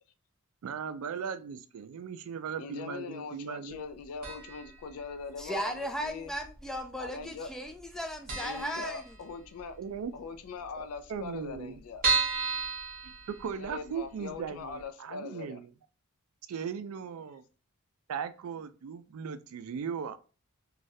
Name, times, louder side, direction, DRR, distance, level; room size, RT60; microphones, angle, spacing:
voice 1, 0.6-3.8 9.8-10.1 10.8-11.8 13.0-15.6 16.5-17.4 18.1-20.2, right 6 dB, 80° right, 0.3 m, -38 dB
voice 2, 2.6-6.3 7.0-7.5 8.4-9.8 10.1-12.0 13.6-15.6, left 5 dB, 90° left, 0.4 m, -41 dB
sound 1, 4.2-4.8 5.0-5.1 6.0-6.7 7.0-7.2 7.5-7.6 7.9-8.0 8.3-9.6 10.0-10.1 10.3-10.4 10.6-10.7 11.2-13.9 14.3-14.4 14.8-14.9, right 4 dB, 45° right, 0.9 m, -32 dB
voice 3, 5.4-9.0, equal, ahead, 0.4 m, -36 dB
3.1 x 2.3 x 2.6 m
head